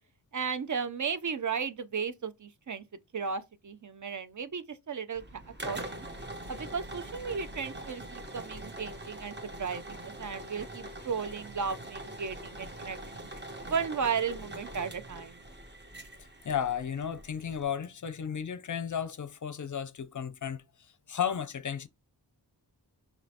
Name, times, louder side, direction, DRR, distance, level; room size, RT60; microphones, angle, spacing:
voice 1, 0.3-2.8 3.1-6.1 6.5-13.3 13.7-15.4, right 6 dB, 45° right, 0.5 m, -35 dB
sound 1, 5.1-17.6, right 1 dB, 25° right, 1.0 m, -43 dB
voice 2, 16.4-20.6 21.1-21.9, left 8 dB, 45° left, 0.5 m, -33 dB
5.1 x 3.0 x 2.7 m
cardioid pair, 45°, 42 cm